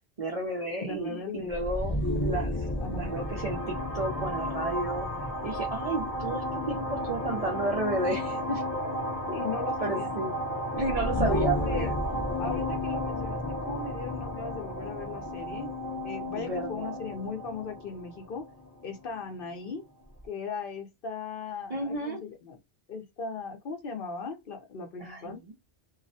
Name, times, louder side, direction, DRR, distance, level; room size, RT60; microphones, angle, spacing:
voice 1, 0.2-5.1 5.4-8.6 9.8-10.3 10.7-11.9 16.3-17.0 21.7-22.2 25.0-25.4, right 2 dB, 50° right, 0.4 m, -32 dB
voice 2, 0.8-1.5 2.8-3.1 9.3-10.1 11.2-11.9 12.4-15.7 16.0-18.5 18.8-19.8 20.2-22.6 22.9-25.4, left 5 dB, 55° left, 0.8 m, -37 dB
sound 1, 1.5-19.2, left 1 dB, 25° left, 0.5 m, -32 dB
2.3 x 2.1 x 2.6 m
omnidirectional pair, 1.2 m